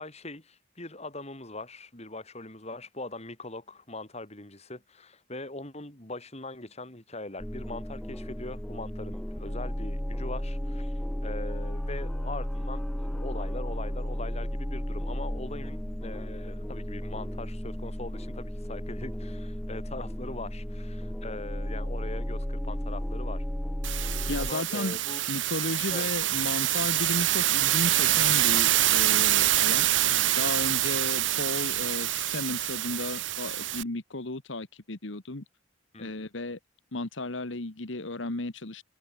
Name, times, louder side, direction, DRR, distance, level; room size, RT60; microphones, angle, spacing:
voice 1, 0.0-10.9 11.2-23.4 24.3-25.2 25.9-26.1 30.1-30.4 35.9-36.3, left 2 dB, 35° left, 6.1 m, -41 dB
sound 1, 7.4-24.5, equal, 5° left, 0.4 m, -34 dB
sound 2, 23.8-33.8, right 14 dB, 70° right, 0.9 m, -26 dB
voice 2, 24.3-25.0 25.3-29.9 30.3-35.4 36.0-36.6 36.9-38.8, left 2 dB, 70° left, 1.7 m, -34 dB
head